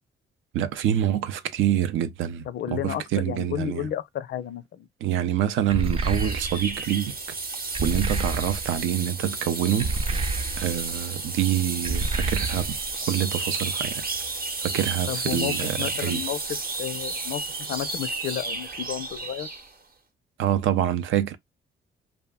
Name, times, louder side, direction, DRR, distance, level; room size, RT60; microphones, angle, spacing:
voice 1, 0.5-2.4 2.7-3.9 5.0-7.1 7.8-9.9 10.6-14.0 14.6-16.2 20.4-21.4, right 11 dB, 80° right, 0.5 m, -26 dB
voice 2, 2.5-4.9 15.1-17.4 17.7-19.5, left 11 dB, 60° left, 0.4 m, -32 dB
sound 1, 5.7-6.8 7.7-8.8 9.8-10.9 11.8-12.9, right 2 dB, 30° right, 0.5 m, -29 dB
sound 2, 5.8-19.7, right 3 dB, 50° right, 0.8 m, -32 dB
2.4 x 2.0 x 3.4 m
cardioid pair, 90°, 20 cm